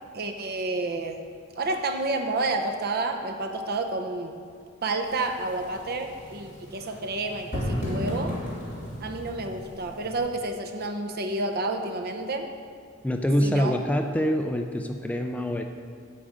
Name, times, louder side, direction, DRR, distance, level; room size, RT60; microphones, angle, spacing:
voice 1, 0.1-1.2 1.6-4.3 4.8-8.4 9.0-12.5 13.4-13.7, right 2 dB, 50° right, 5 dB, 0.7 m, -30 dB
sound 1, 5.0-10.2, equal, 35° left, 2.3 m, -35 dB
voice 2, 13.0-15.6, equal, 5° left, 4 dB, 0.4 m, -25 dB
8.6 x 5.1 x 7.4 m, 2.1 s
head